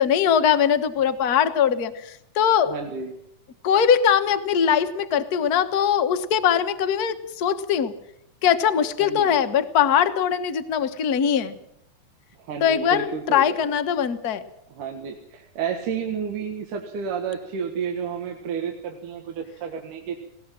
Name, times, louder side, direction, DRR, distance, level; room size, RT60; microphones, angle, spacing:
voice 1, 0.0-2.7 3.6-7.9 8.4-11.6 12.6-14.4, left 8 dB, 70° left, 9 dB, 0.9 m, -21 dB
voice 2, 2.6-3.1 9.0-9.4 12.4-13.6 14.7-20.2, right 6 dB, 80° right, 3 dB, 3.2 m, -31 dB
20.0 x 17.5 x 7.5 m, 0.78 s
omnidirectional pair, 3.6 m